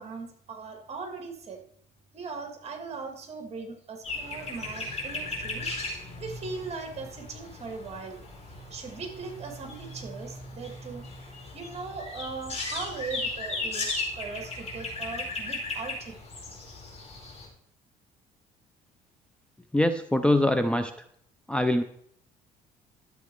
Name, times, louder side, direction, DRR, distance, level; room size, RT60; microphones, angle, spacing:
voice 1, 0.0-1.6 2.1-5.7 6.2-8.2 8.7-11.1 11.5-16.2, right 4 dB, 40° right, 4 dB, 2.4 m, -39 dB
sound 1, 4.0-17.5, left 2 dB, 40° left, 4.5 m, -37 dB
voice 2, 19.7-20.9 21.5-21.8, left 1 dB, 5° left, 9 dB, 0.6 m, -23 dB
12.0 x 8.0 x 4.7 m, 0.67 s
cardioid pair, 110°, 17 cm